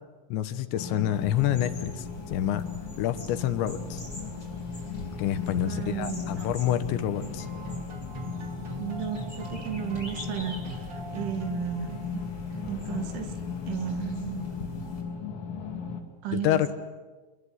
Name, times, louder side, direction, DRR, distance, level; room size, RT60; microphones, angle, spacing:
voice 1, 0.3-2.6 3.0-4.0 5.2-7.5 16.3-16.7, left 11 dB, 75° left, 11 dB, 3.3 m, -27 dB
sound 1, 0.8-16.0, left 6 dB, 45° left, 3.1 m, -37 dB
sound 2, 1.1-15.0, left 1 dB, 10° left, 6.8 m, -44 dB
voice 2, 5.7-6.5 8.8-12.3 12.5-13.3 13.7-14.5 16.2-16.7, right 9 dB, 75° right, 7 dB, 4.4 m, -34 dB
sound 3, 7.1-12.3, right 4 dB, 35° right, 3.3 m, -43 dB
27.5 x 22.0 x 9.7 m, 1.3 s
omnidirectional pair, 5.6 m